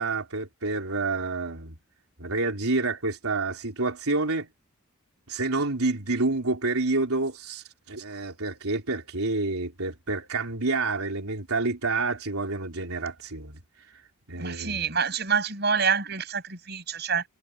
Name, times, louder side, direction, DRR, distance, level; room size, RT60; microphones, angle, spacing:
voice 1, 0.0-1.8 2.2-4.5 5.3-13.6 13.9-14.0 14.3-14.9, right 3 dB, 85° right, 3.8 m, -28 dB
voice 2, 14.4-17.2, right 6 dB, 50° right, 6.5 m, -27 dB
head